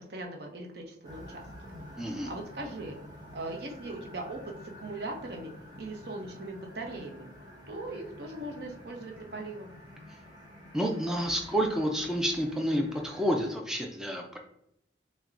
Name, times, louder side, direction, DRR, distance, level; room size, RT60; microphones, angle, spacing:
voice 1, 0.0-1.4 2.3-3.0 3.3-4.5 4.8-5.5 5.8-7.3 7.7-9.7, right 2 dB, 60° right, 1 dB, 0.7 m, -39 dB
sound 1, 1.0-13.5, equal, 20° right, 1.0 m, -49 dB
voice 2, 2.0-2.3 10.7-14.4, equal, 5° right, 1 dB, 0.4 m, -29 dB
6.0 x 2.2 x 2.5 m, 0.75 s
head